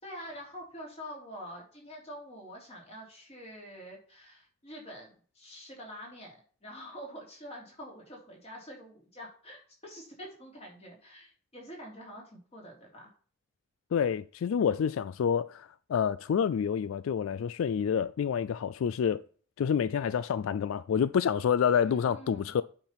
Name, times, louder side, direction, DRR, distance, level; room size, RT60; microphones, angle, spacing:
voice 1, 0.0-13.1 21.8-22.6, equal, 30° left, 3.1 m, -46 dB
voice 2, 13.9-19.2 19.6-22.6, left 7 dB, 90° left, 0.3 m, -28 dB
8.7 x 4.4 x 5.7 m
head